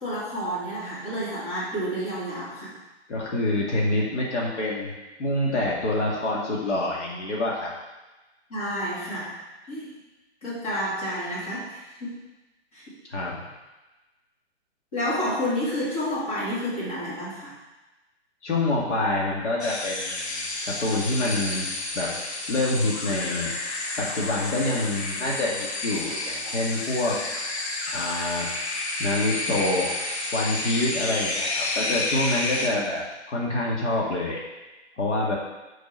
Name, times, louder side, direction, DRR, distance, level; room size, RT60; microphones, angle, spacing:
voice 1, 0.0-2.7 8.5-9.3 9.7-9.9 10.4-11.7 12.0-12.2 12.7-12.9 14.9-17.5 26.4-26.6 31.4-31.5, equal, 30° left, -9 dB, 2.4 m, -30 dB
voice 2, 3.1-4.9 5.2-7.7 13.1-13.4 18.4-21.7 21.9-22.2 22.5-23.5 24.0-27.2 27.9-28.5 29.0-29.9 30.3-34.4 35.0-35.3, left 2 dB, 90° left, -3 dB, 2.0 m, -26 dB
sound 1, 19.6-32.7, left 2 dB, 70° left, 1.1 m, -30 dB
5.3 x 4.6 x 5.3 m, 1.1 s
hypercardioid pair, 175°, 34 cm